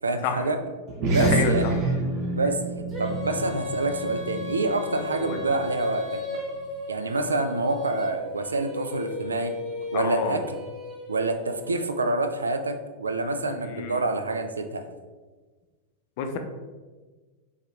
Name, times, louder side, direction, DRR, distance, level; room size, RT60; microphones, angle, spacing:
voice 1, 0.0-0.6 1.1-1.6 2.3-2.6 3.0-6.4 6.9-9.5 9.9-10.6 11.1-14.8, right 2 dB, 75° right, 7 dB, 0.4 m, -27 dB
sound 1, 0.9-5.7, right 3 dB, 40° right, 0.9 m, -28 dB
voice 2, 1.2-1.7 5.1-5.4 9.9-10.4 13.7-14.0 16.2-16.4, left 6 dB, 45° left, 5 dB, 0.5 m, -28 dB
Female singing, 2.9-11.7, left 4 dB, 20° right, 1.3 m, -36 dB
4.5 x 3.6 x 3.2 m, 1.3 s
figure-of-eight pair, 90°, 0 cm